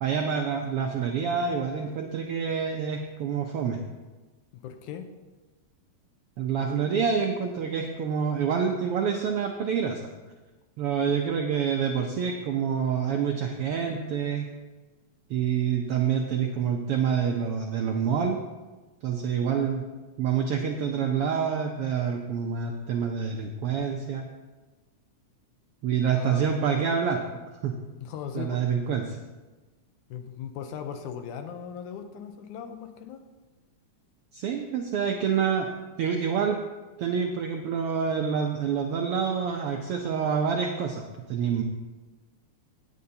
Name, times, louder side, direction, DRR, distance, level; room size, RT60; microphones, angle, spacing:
voice 1, 0.0-3.8 6.4-10.1 10.8-14.5 15.3-18.4 19.0-19.8 20.2-24.2 25.8-27.2 27.6-27.8 28.3-29.2 34.3-35.7 36.0-36.6 37.0-41.6, right 7 dB, 80° right, 2 dB, 1.3 m, -27 dB
voice 2, 4.5-5.1 26.1-26.5 28.0-28.6 30.1-33.2, left 8 dB, 85° left, 7 dB, 2.3 m, -38 dB
16.5 x 9.3 x 2.8 m, 1.2 s
omnidirectional pair, 3.4 m